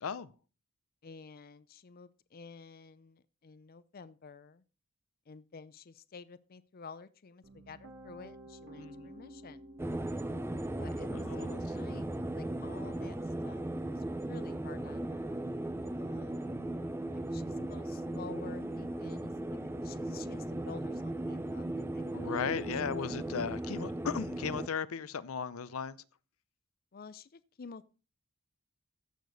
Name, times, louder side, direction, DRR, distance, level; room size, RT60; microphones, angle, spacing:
voice 1, 1.0-4.6 5.3-9.6 10.8-15.3 16.0-16.5 17.0-21.6 21.9-23.1 26.9-27.9, left 5 dB, 45° left, 0.5 m, -51 dB
Piano, 7.4-19.4, right 1 dB, 65° right, 2.1 m, -56 dB
voice 2, 8.8-9.1 11.1-11.6 22.1-26.0, left 6 dB, 85° left, 0.6 m, -36 dB
sound 1, 9.8-24.7, right 1 dB, 10° right, 0.5 m, -37 dB
15.5 x 6.8 x 4.0 m
head